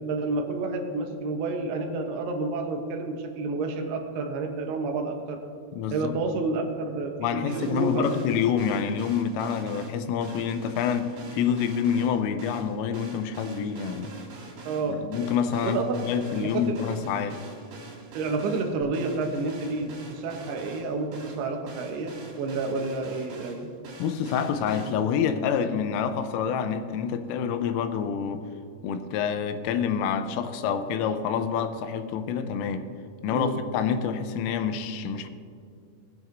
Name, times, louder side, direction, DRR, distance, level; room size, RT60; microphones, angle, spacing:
voice 1, 0.0-5.4 5.9-8.0 14.7-15.0 15.6-15.9 16.4-16.8 18.1-23.7 33.3-33.6, right 3 dB, 80° right, 3 dB, 2.3 m, -30 dB
voice 2, 5.7-6.1 7.2-14.1 14.9-17.4 24.0-28.5 28.8-32.9 33.2-35.3, left 7 dB, 90° left, 8 dB, 3.3 m, -27 dB
sound 1, 7.5-24.9, right 3 dB, 60° right, 4.5 m, -45 dB
sound 2, 18.8-22.1, left 1 dB, 65° left, 3.8 m, -51 dB
19.0 x 9.1 x 2.6 m, 2.4 s
omnidirectional pair, 5.8 m